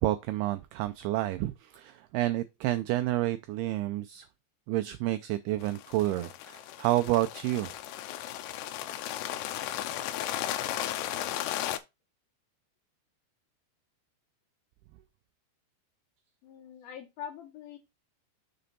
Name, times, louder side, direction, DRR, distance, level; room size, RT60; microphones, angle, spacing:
voice 1, 0.0-4.3 4.7-7.7, right 15 dB, 85° right, 2.3 m, -29 dB
sound 1, 5.6-11.8, left 12 dB, 85° left, 2.8 m, -35 dB
voice 2, 16.4-17.8, left 9 dB, 65° left, 2.6 m, -43 dB
6.8 x 4.2 x 5.2 m
omnidirectional pair, 5.2 m